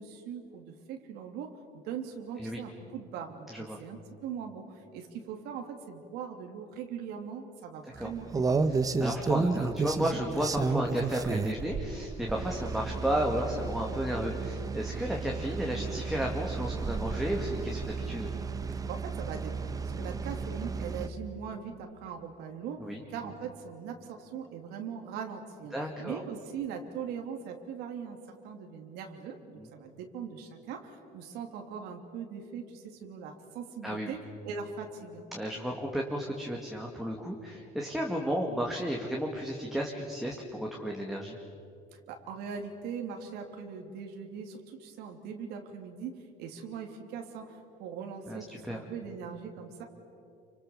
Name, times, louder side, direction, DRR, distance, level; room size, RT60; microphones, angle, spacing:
voice 1, 0.0-8.7 18.7-34.2 34.4-35.3 41.9-49.8, right 7 dB, 85° right, 3 dB, 3.0 m, -41 dB
voice 2, 3.5-3.8 8.0-8.1 8.7-18.3 22.8-23.0 25.7-26.2 29.6-29.7 33.8-34.1 35.3-41.4 48.3-48.8, equal, ahead, -1 dB, 2.2 m, -33 dB
sound 1, 8.0-21.1, right 4 dB, 20° right, 1.1 m, -33 dB
29.5 x 25.0 x 7.2 m, 2.5 s
cardioid pair, 140°, 17 cm